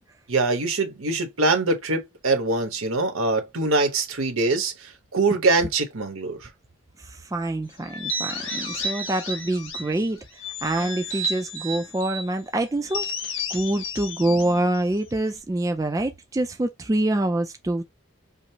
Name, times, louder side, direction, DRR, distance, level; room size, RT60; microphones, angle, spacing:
voice 1, 0.3-6.5, right 3 dB, 85° right, 1.1 m, -23 dB
voice 2, 7.0-13.1 13.5-17.8, right 1 dB, 15° right, 0.3 m, -26 dB
sound 1, 7.9-10.0 10.4-12.3 12.9-15.4, left 1 dB, 70° left, 1.4 m, -32 dB
5.1 x 2.0 x 2.7 m
head